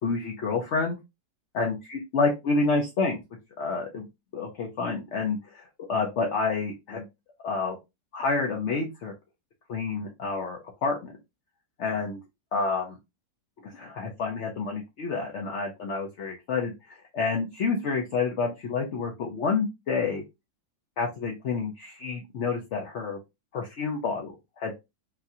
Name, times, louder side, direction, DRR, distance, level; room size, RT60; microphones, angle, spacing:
voice 1, 0.0-1.0 1.5-3.2 3.6-4.1 4.3-5.6 5.9-7.1 7.4-7.8 8.1-9.1 9.7-11.1 11.8-12.2 12.5-13.0 13.6-20.2 21.0-23.2 23.5-24.8, left 4 dB, 55° left, 1 dB, 0.8 m, -29 dB
4.0 x 2.3 x 2.7 m, 0.23 s
omnidirectional pair, 1.9 m